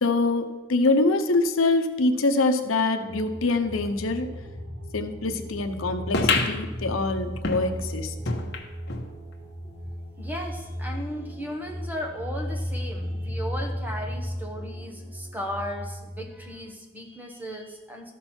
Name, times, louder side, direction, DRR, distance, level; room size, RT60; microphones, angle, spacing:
voice 1, 0.0-4.3 4.9-8.1, left 3 dB, 85° left, 6 dB, 0.8 m, -24 dB
sound 1, 3.1-16.5, equal, 45° right, 2.8 m, -35 dB
sound 2, 6.1-9.1 9.5-9.6 9.8-9.9 10.7-10.8, left 3 dB, 55° left, 1.1 m, -28 dB
voice 2, 10.2-18.1, equal, 10° right, 1 dB, 1.2 m, -36 dB
13.5 x 6.1 x 4.4 m, 1.1 s
head